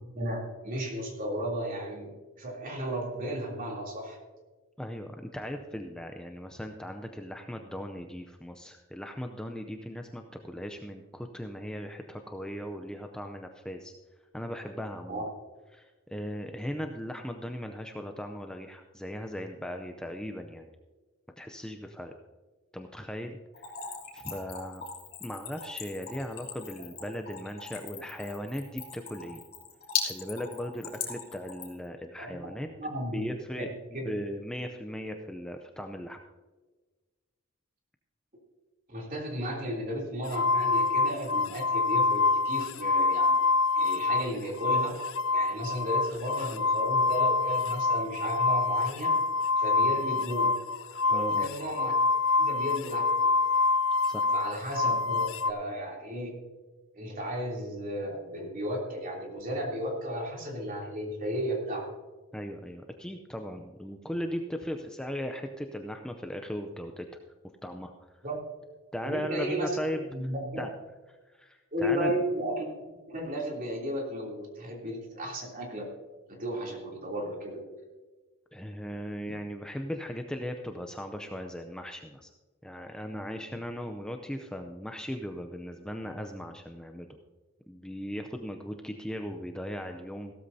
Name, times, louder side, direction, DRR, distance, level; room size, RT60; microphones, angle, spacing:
voice 1, 0.0-2.1 2.4-4.2 15.1-15.2 32.2-32.5 32.8-33.2 33.5-33.7 33.9-34.1 38.9-42.2 42.4-43.4 43.7-45.0 45.3-49.1 49.6-50.5 51.1-51.9 52.4-53.3 54.3-56.3 56.9-61.9 68.2-68.4 69.0-69.7 70.1-70.6 71.7-72.7 73.1-75.8 76.3-77.6, equal, 40° right, -1 dB, 3.2 m, -34 dB
voice 2, 4.8-13.9 14.3-15.3 15.7-20.7 21.4-22.1 22.7-23.4 24.1-24.8 25.2-29.4 30.0-33.7 34.1-36.2 51.0-51.5 54.1-54.3 62.3-67.2 67.6-67.9 68.9-70.0 70.6-70.7 71.3-72.1 78.5-82.3 82.6-87.2 87.7-90.3, equal, 5° left, 4 dB, 0.5 m, -38 dB
Splash splatter / Trickle dribble, 23.5-31.8, left 6 dB, 45° left, 3.1 m, -38 dB
sound 1, 40.3-44.3 44.6-55.5, left 3 dB, 65° left, 0.6 m, -26 dB
16.0 x 13.0 x 2.8 m, 1.3 s
head